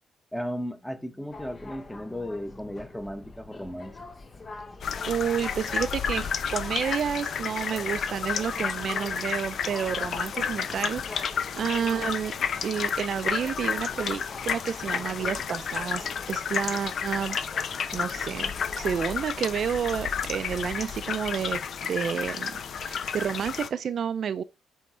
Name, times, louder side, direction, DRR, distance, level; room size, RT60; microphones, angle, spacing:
voice 1, 0.3-4.1, equal, 5° left, 1.1 m, -35 dB
sound 1, 1.3-19.3, left 3 dB, 30° left, 0.9 m, -44 dB
sound 2, 4.8-23.7, left 7 dB, 60° left, 0.7 m, -31 dB
voice 2, 5.1-12.3 12.6-17.4 17.9-22.5 22.8-24.4, right 8 dB, 55° right, 0.5 m, -30 dB
7.9 x 3.7 x 4.3 m
cardioid pair, 90°, 0 cm